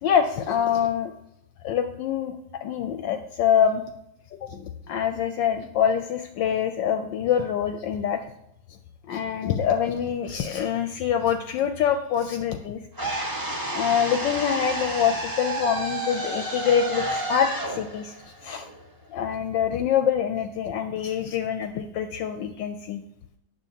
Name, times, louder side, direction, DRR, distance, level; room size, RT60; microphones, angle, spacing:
voice 1, 0.0-1.1 1.6-3.8 4.4-8.3 9.1-12.8 13.7-18.1 18.4-18.7 19.1-23.0, left 8 dB, 75° left, 7 dB, 1.1 m, -25 dB
sound 1, 13.0-19.1, right 1 dB, 10° right, 1.1 m, -30 dB
9.0 x 7.0 x 2.8 m, 0.78 s
omnidirectional pair, 2.2 m